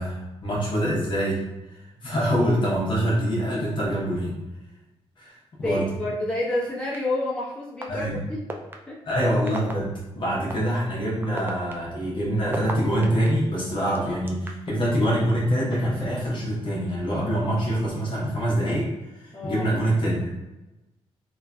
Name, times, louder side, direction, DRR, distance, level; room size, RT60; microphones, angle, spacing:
voice 1, 0.0-1.4 2.0-4.4 5.2-5.3 5.6-5.9 7.9-8.2 9.1-18.9 19.2-20.3, equal, 50° left, -5 dB, 0.8 m, -25 dB
voice 2, 5.6-8.4 8.9-9.0 19.3-19.8, left 1 dB, 10° left, -8 dB, 0.9 m, -29 dB
sound 1, 6.9-7.0 7.8-7.9 8.5-8.7 9.5-9.7 10.5-10.6 11.2-13.3 13.9-14.7, right 2 dB, 20° right, 0.3 m, -33 dB
3.2 x 2.2 x 2.3 m, 1.0 s
cardioid pair, 90°, 11 cm